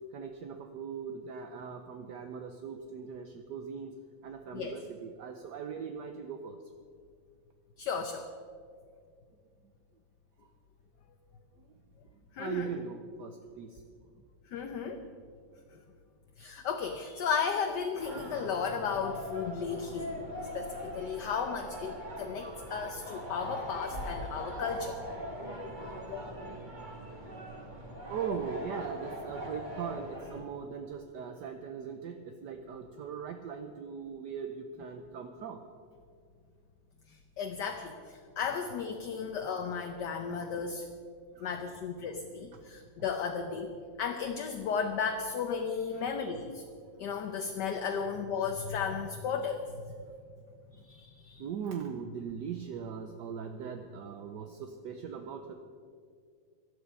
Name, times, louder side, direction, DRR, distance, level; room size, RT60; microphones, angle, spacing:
voice 1, 0.1-3.9 4.2-6.6 12.4-13.7 23.9-25.1 26.7-26.8 28.1-35.6 39.1-39.2 40.4-40.5 41.4-41.5 45.9-46.1 47.9-48.0 51.4-55.5, right 7 dB, 65° right, 6 dB, 1.3 m, -40 dB
voice 2, 7.8-8.2 12.4-12.7 14.5-15.0 16.4-20.2 20.5-25.0 26.1-26.2 37.4-40.9 41.4-43.7 44.0-46.6 47.0-49.6 50.9-51.4, left 6 dB, 65° left, 5 dB, 1.4 m, -34 dB
sound 1, 18.0-30.4, equal, 25° right, 2.1 m, -41 dB
17.5 x 12.0 x 5.5 m, 2.2 s
omnidirectional pair, 2.2 m